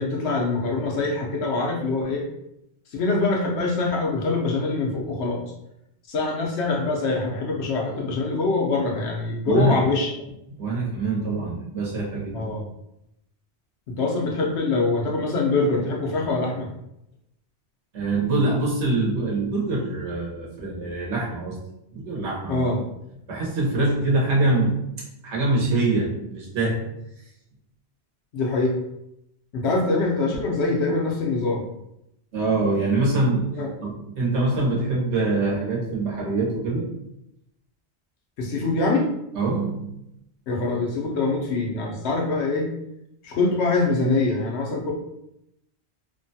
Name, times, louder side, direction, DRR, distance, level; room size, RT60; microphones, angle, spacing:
voice 1, 0.0-2.3 2.9-5.4 6.1-10.1 12.3-12.7 13.9-16.7 22.5-22.9 28.3-28.8 29.5-31.6 33.5-33.7 38.4-39.0 40.5-42.7 43.2-44.9, left 3 dB, 80° left, -1 dB, 1.0 m, -24 dB
voice 2, 9.5-9.8 10.6-12.5 17.9-21.6 21.9-22.6 23.3-24.9 25.2-26.8 32.3-33.5 33.8-36.8 39.3-40.0, right 2 dB, 90° right, -4 dB, 1.3 m, -24 dB
3.0 x 2.2 x 2.6 m, 0.81 s
omnidirectional pair, 1.1 m